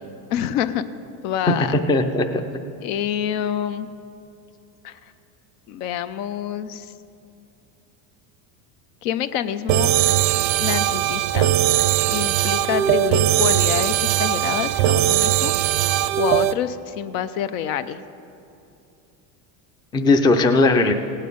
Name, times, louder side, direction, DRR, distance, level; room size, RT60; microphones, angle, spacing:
voice 1, 0.3-0.8 1.2-1.8 2.8-3.9 4.8-5.0 5.7-6.9 9.0-9.9 10.6-11.5 12.1-18.0, left 9 dB, 75° left, 12 dB, 0.8 m, -27 dB
voice 2, 1.6-2.4 19.9-20.9, left 2 dB, 10° left, 6 dB, 0.4 m, -18 dB
sound 1, 9.7-16.5, right 13 dB, 85° right, 0.6 m, -20 dB
17.0 x 8.3 x 5.3 m, 2.7 s
supercardioid pair, 130°, 46 cm